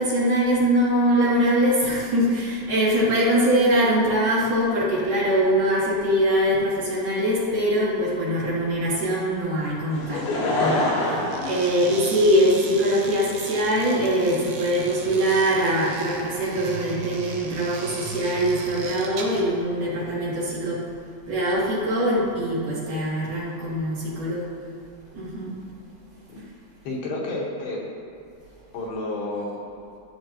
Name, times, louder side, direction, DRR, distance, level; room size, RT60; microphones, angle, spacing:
voice 1, 0.0-10.3 10.6-20.8 21.3-24.5 25.1-25.6, equal, 55° right, -9 dB, 3.9 m, -22 dB
Laughter / Crowd, 9.9-12.5 13.2-13.3, left 2 dB, 90° left, 3.9 m, -25 dB
sound 1, 11.3-19.5, right 4 dB, 75° right, 3.1 m, -37 dB
voice 2, 26.8-27.8 28.7-29.6, left 2 dB, 70° left, -4 dB, 3.1 m, -30 dB
15.5 x 8.5 x 2.9 m, 2.6 s
omnidirectional pair, 4.8 m